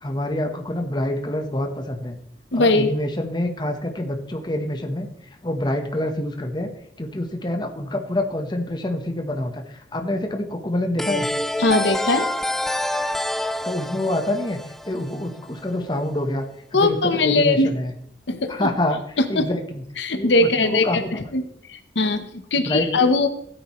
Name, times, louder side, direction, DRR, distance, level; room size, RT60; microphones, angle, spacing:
voice 1, 0.0-2.2 2.5-5.1 5.4-6.7 7.0-11.3 13.6-14.6 14.8-16.5 16.7-17.9 18.5-19.0 19.3-19.8 20.2-21.1 22.6-23.1, left 1 dB, 25° left, 5 dB, 1.1 m, -26 dB
voice 2, 2.5-2.9 11.6-12.3 16.7-17.7 18.3-18.6 19.2-19.4 20.0-21.4 21.7-23.3, left 2 dB, 80° left, 9 dB, 1.0 m, -20 dB
sound 1, 11.0-15.6, left 1 dB, ahead, 0.3 m, -27 dB
16.0 x 9.1 x 3.1 m, 0.71 s
head